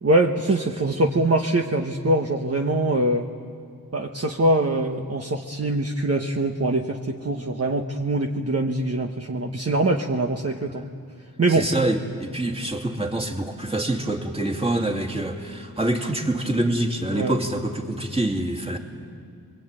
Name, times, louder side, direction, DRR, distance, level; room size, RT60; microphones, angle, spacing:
voice 1, 0.0-3.3 3.9-10.8 11.4-11.7 17.1-17.3, right 2 dB, 40° right, 2 dB, 1.4 m, -23 dB
voice 2, 11.5-18.8, right 1 dB, 15° right, 2 dB, 2.7 m, -26 dB
29.5 x 22.5 x 9.1 m, 2.3 s
wide cardioid pair, 95°, 37 cm